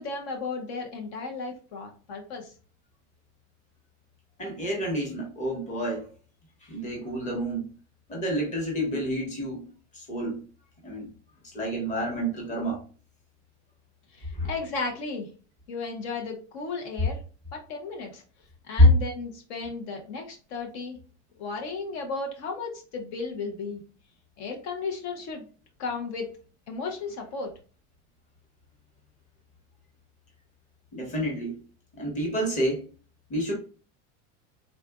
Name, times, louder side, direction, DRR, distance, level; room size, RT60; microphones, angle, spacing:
voice 1, 0.0-2.5 14.1-15.3 15.7-17.2 17.5-18.2 18.7-21.0 21.4-23.8 24.4-25.5 25.8-26.3 26.7-27.5, left 4 dB, 65° left, 2 dB, 0.8 m, -34 dB
voice 2, 4.4-6.1 6.6-7.7 8.1-9.6 9.9-10.4 10.8-11.1 11.4-12.8 14.3-14.5 18.8-18.9 30.9-31.6 32.0-32.8 33.3-33.5, left 1 dB, 20° left, -1 dB, 1.0 m, -27 dB
3.8 x 2.4 x 2.3 m, 0.38 s
supercardioid pair, 155°, 36 cm